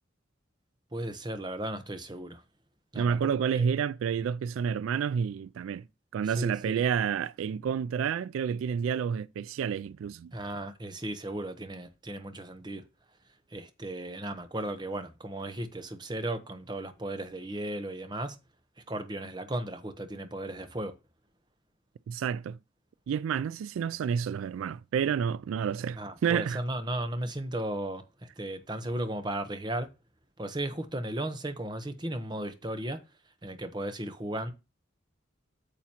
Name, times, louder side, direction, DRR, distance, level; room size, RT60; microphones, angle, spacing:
voice 1, 0.9-2.4 2.9-3.2 3.5-3.7 6.2-6.8 10.3-12.8 13.5-18.4 18.9-20.9 26.0-29.9 30.4-33.0 33.4-34.5, right 1 dB, 20° right, 0.9 m, -35 dB
voice 2, 3.0-5.9 6.1-10.3 22.1-22.6 23.1-26.6, right 7 dB, 90° right, 0.3 m, -29 dB
8.9 x 7.0 x 2.9 m
head